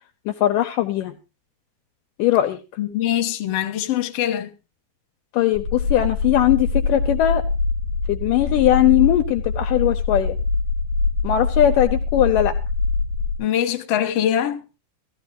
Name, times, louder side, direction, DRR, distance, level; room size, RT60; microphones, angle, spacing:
voice 1, 0.3-1.2 2.2-2.6 5.3-7.4 8.1-10.4 11.2-12.6, left 13 dB, 75° left, 2.1 m, -19 dB
voice 2, 2.8-4.5 13.4-14.6, left 11 dB, 55° left, 1.8 m, -23 dB
sound 1, 5.5-13.3, left 3 dB, 65° right, 7.6 m, -24 dB
16.5 x 14.5 x 3.0 m
omnidirectional pair, 4.3 m